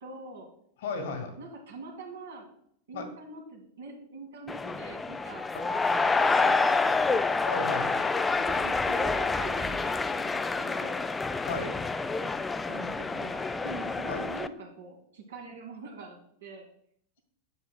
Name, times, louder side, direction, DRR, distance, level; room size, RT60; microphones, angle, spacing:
voice 1, 0.0-0.5 1.4-2.5 2.9-6.4 6.7-6.9 7.8-8.0 8.3-11.0 12.2-16.6, right 3 dB, 65° right, 1 dB, 1.7 m, -44 dB
voice 2, 0.8-1.3 2.9-3.0 5.5-5.6 7.4-8.0 11.4-11.9 14.1-14.2, left 3 dB, 60° left, 5 dB, 1.6 m, -34 dB
sound 1, 4.5-14.5, left 3 dB, 15° left, 0.3 m, -28 dB
8.5 x 6.8 x 2.2 m, 0.67 s
figure-of-eight pair, 90°, 0 cm